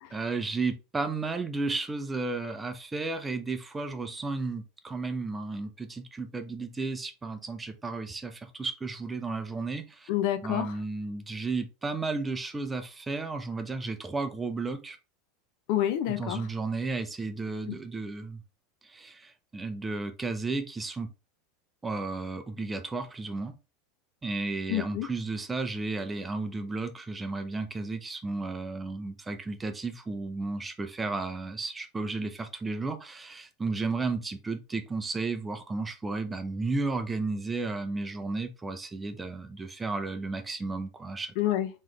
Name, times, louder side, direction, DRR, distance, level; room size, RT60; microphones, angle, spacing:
voice 1, 0.1-10.1 10.4-15.0 16.1-18.4 18.8-21.1 21.8-23.5 24.2-41.3, right 3 dB, 15° right, 0.6 m, -33 dB
voice 2, 10.1-10.8 15.7-16.4 17.7-17.8 24.7-25.1 41.4-41.7, left 12 dB, 65° left, 0.6 m, -28 dB
3.7 x 3.1 x 3.2 m
supercardioid pair, 120°, 0 cm